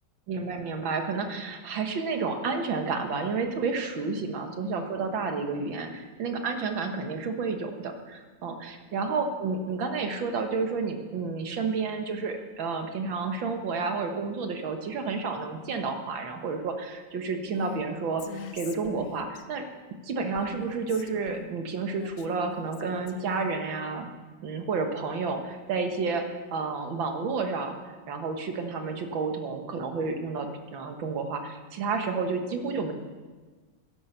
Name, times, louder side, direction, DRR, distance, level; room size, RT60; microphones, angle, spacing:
voice 1, 0.3-18.2 18.5-19.6 20.1-24.1 24.4-32.9, right 4 dB, 75° right, 5 dB, 2.1 m, -30 dB
Female speech woman speaking, 17.5-17.8 18.2-19.4 20.3-21.5 21.9-23.6, left 8 dB, 60° left, 0.8 m, -43 dB
11.5 x 11.0 x 6.7 m, 1.4 s
omnidirectional pair, 2.2 m